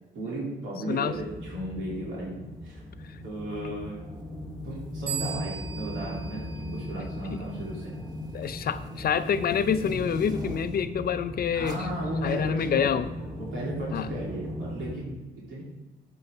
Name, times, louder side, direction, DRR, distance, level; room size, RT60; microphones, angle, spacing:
voice 1, 0.1-2.8 3.2-4.0 4.6-8.0 8.5-8.6 11.5-12.9 13.4-15.6, right 1 dB, 75° right, -5 dB, 3.0 m, -35 dB
sound 1, 1.1-15.0, left 1 dB, ahead, 2.7 m, -38 dB
sound 2, 4.7-5.0 6.0-6.4 6.7-11.0 11.6-11.9, right 1 dB, 20° right, 1.4 m, -42 dB
sound 3, 5.1-7.5, right 8 dB, 50° right, 1.1 m, -39 dB
voice 2, 8.3-11.8 12.2-13.1 13.9-14.1, left 7 dB, 50° left, 12 dB, 0.5 m, -27 dB
8.5 x 7.0 x 3.5 m, 1.1 s
cardioid pair, 90°, 20 cm